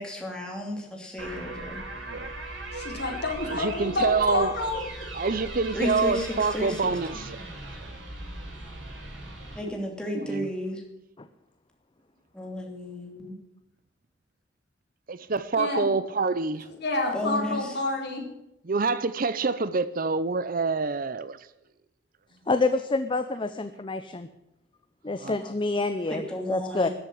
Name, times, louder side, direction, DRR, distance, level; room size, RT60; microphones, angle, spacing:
voice 1, 0.0-1.8 5.7-6.8 9.5-10.8 12.3-13.4 17.1-17.6 26.1-26.9, left 1 dB, 5° left, 2.7 m, -32 dB
sound 1, 1.2-9.6, right 2 dB, 90° right, 7.4 m, -38 dB
voice 2, 1.9-2.3 3.5-4.5 5.1-7.4 10.2-10.5 15.1-16.7 18.7-21.4 25.1-25.4, right 4 dB, 50° right, 0.7 m, -27 dB
voice 3, 2.7-4.8 15.5-15.9 16.8-18.3, left 2 dB, 60° left, 4.2 m, -29 dB
voice 4, 22.5-24.3 25.0-26.2 26.5-26.9, left 3 dB, 25° left, 0.6 m, -27 dB
13.5 x 8.1 x 10.0 m
head